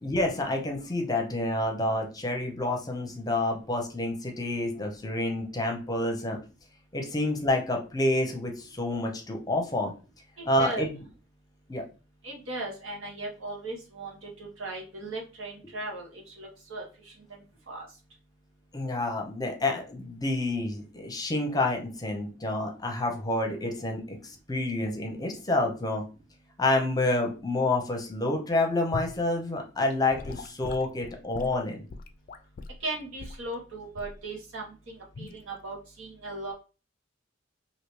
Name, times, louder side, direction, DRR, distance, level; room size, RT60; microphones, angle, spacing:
voice 1, 0.0-6.4 6.9-9.9 10.5-11.0 11.7-11.8 18.7-26.0 26.6-31.8, left 2 dB, 20° left, 2 dB, 0.7 m, -28 dB
voice 2, 10.4-10.8 12.2-17.1 17.7-17.9 32.8-36.5, right 2 dB, 90° right, -2 dB, 1.3 m, -38 dB
Gurgling / Sink (filling or washing) / Liquid, 28.9-29.2 30.1-32.8 33.2-33.4 33.9-34.2 35.1-35.4, left 3 dB, 45° left, 0.4 m, -40 dB
3.2 x 2.8 x 3.1 m, 0.33 s
head